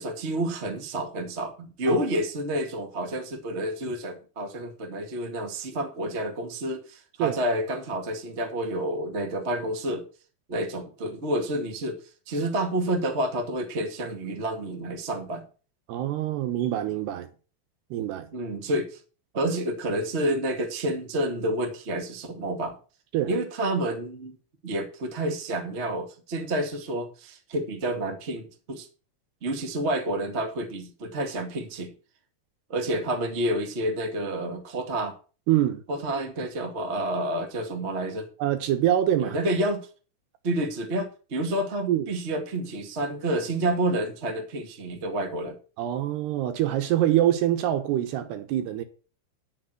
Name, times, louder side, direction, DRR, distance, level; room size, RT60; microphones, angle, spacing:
voice 1, 0.0-10.0 10.5-15.4 18.3-19.0 19.3-22.7 23.3-24.4 24.6-28.9 29.4-31.9 32.7-35.2 35.9-38.3 39.2-39.9 40.4-45.6, right 1 dB, 35° right, 1.1 m, -29 dB
voice 2, 15.9-17.3 17.9-18.3 23.1-23.3 35.5-35.8 38.4-39.4 41.9-42.1 45.8-48.8, right 12 dB, 75° right, 3.1 m, -25 dB
10.5 x 6.7 x 6.1 m
omnidirectional pair, 5.1 m